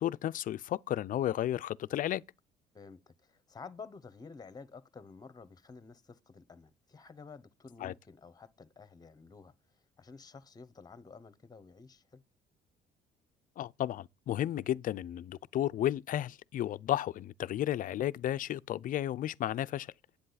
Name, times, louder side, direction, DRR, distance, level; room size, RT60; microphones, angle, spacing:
voice 1, 0.0-2.2 7.8-7.9 13.6-19.9, left 12 dB, 55° left, 0.5 m, -33 dB
voice 2, 2.7-9.5 10.0-12.2, left 4 dB, 25° left, 1.1 m, -51 dB
10.0 x 8.6 x 4.1 m
cardioid pair, 110°, 17 cm